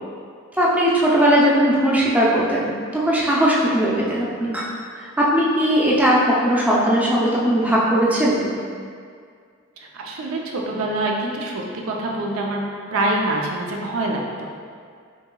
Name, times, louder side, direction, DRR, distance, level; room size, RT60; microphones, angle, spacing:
voice 1, 0.6-4.6 5.2-8.4, equal, 5° right, -6 dB, 0.5 m, -18 dB
voice 2, 9.8-12.6 12.9-14.5, right 2 dB, 75° right, -1 dB, 0.5 m, -25 dB
5.5 x 2.8 x 2.3 m, 2.1 s
head